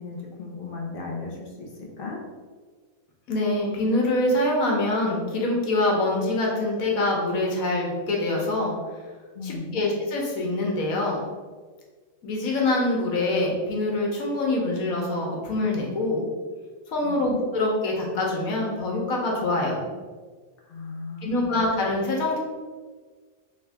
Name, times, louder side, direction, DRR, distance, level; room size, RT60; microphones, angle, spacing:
voice 1, 0.0-1.7 2.0-2.2 9.3-9.8 17.0-17.4 20.7-21.6, left 4 dB, 55° left, -1 dB, 0.7 m, -35 dB
voice 2, 3.3-8.7 9.4-11.2 12.2-16.2 16.9-19.9 21.2-22.4, left 2 dB, 85° left, -1 dB, 1.3 m, -25 dB
3.6 x 3.3 x 3.3 m, 1.4 s
omnidirectional pair, 1.5 m